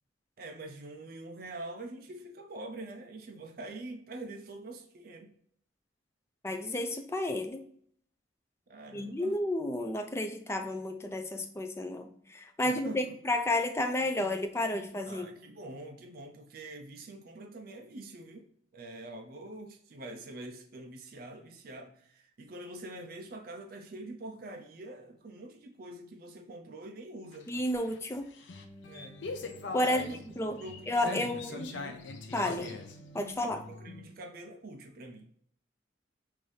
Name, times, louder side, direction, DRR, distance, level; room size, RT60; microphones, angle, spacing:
voice 1, 0.4-5.3 8.7-9.4 12.6-13.2 15.1-27.5 28.9-29.5 29.8-30.2 30.6-32.0 32.6-32.8 33.4-35.3, right 2 dB, 50° right, 0.5 m, -45 dB
voice 2, 6.4-7.6 8.9-15.3 27.5-28.3 29.7-30.6 30.9-31.7 32.3-32.7 33.1-33.6, left 1 dB, 15° left, 0.3 m, -31 dB
sound 1, 27.3-34.1, left 3 dB, 65° left, 0.5 m, -42 dB
5.5 x 2.6 x 3.2 m
head